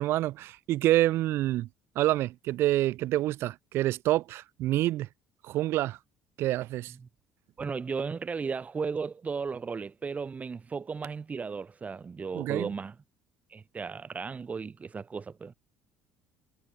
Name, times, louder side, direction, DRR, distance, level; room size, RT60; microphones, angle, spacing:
voice 1, 0.0-1.7 1.9-5.1 5.4-6.0 6.4-6.9 12.3-12.7, right 15 dB, 60° right, 0.9 m, -27 dB
voice 2, 7.6-13.0 13.5-15.5, right 5 dB, 30° right, 5.3 m, -35 dB
hypercardioid pair, 60°, 5 cm